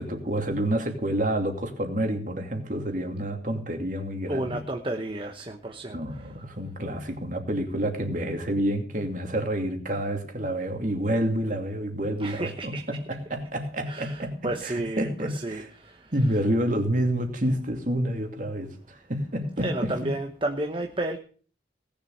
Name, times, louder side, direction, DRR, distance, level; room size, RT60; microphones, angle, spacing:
voice 1, 0.0-4.6 5.9-14.4 14.6-15.7 16.1-20.1, right 1 dB, 45° right, 4 dB, 2.6 m, -28 dB
voice 2, 4.3-6.0 12.2-12.8 13.8-16.4 19.6-21.2, right 1 dB, 30° right, 3 dB, 1.0 m, -32 dB
18.5 x 7.2 x 6.5 m, 0.43 s
head